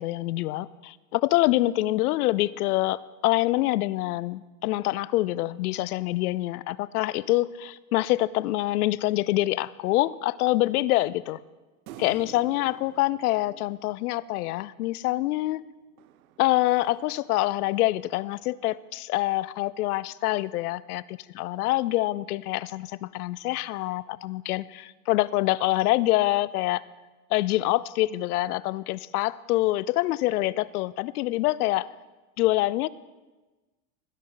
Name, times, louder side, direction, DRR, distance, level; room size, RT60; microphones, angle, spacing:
voice 1, 0.0-11.4 12.0-15.6 16.4-26.8 27.3-31.9 32.4-32.9, left 17 dB, 80° left, 20 dB, 0.6 m, -26 dB
sound 1, 11.9-14.5 16.0-18.1, right 11 dB, 70° right, 0.8 m, -49 dB
15.5 x 10.5 x 3.9 m, 1.2 s
supercardioid pair, 160°, 45 cm